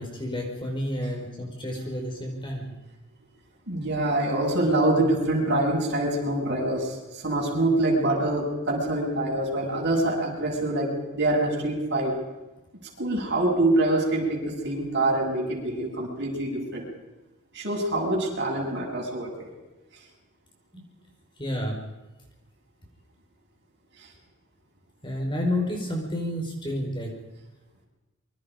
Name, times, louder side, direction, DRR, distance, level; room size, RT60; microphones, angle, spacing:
voice 1, 0.0-2.7 20.7-20.8 21.4-21.8 25.0-27.1, left 1 dB, 20° left, 1 dB, 5.0 m, -30 dB
voice 2, 3.7-12.1 13.0-16.8 17.5-19.5, right 1 dB, 50° right, -1 dB, 7.7 m, -25 dB
27.0 x 24.5 x 5.2 m, 1.1 s
head